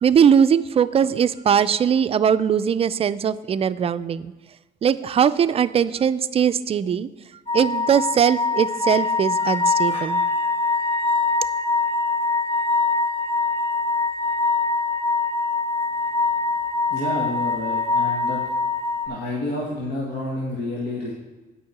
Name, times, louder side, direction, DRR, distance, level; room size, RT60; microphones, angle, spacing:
voice 1, 0.0-4.3 4.8-7.1 7.5-10.2, right 8 dB, 35° right, 13 dB, 0.4 m, -20 dB
sound 1, 7.5-19.1, left 3 dB, 40° left, 2.6 m, -23 dB
voice 2, 16.9-18.4 19.1-21.1, left 2 dB, 80° left, -3 dB, 1.9 m, -29 dB
8.7 x 5.5 x 7.9 m, 1.2 s
cardioid pair, 110°, 17 cm